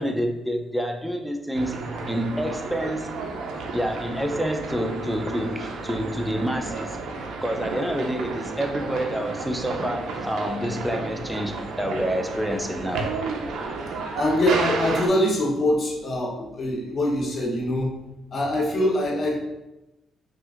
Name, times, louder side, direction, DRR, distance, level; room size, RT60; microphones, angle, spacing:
voice 1, 0.0-3.1 3.7-7.0 7.4-13.1, equal, ahead, 4 dB, 0.4 m, -28 dB
sound 1, 1.5-15.1, right 3 dB, 75° right, 0.5 m, -32 dB
voice 2, 14.2-18.0 18.3-19.4, left 1 dB, 40° left, -1 dB, 0.8 m, -23 dB
5.6 x 2.5 x 2.4 m, 0.96 s
cardioid pair, 135°, 0 cm